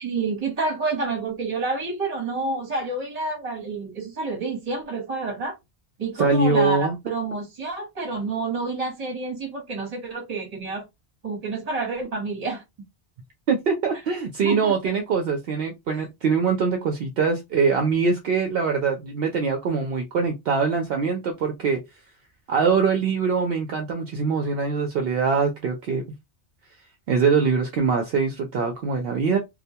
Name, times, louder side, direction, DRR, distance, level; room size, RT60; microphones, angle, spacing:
voice 1, 0.0-5.5 6.0-10.8 11.2-12.6 14.4-14.8 15.9-16.0, right 3 dB, 40° right, 1.1 m, -29 dB
voice 2, 6.2-7.0 13.5-21.8 22.5-26.0 27.1-29.4, right 5 dB, 70° right, 0.8 m, -23 dB
2.3 x 2.1 x 2.7 m
omnidirectional pair, 1.1 m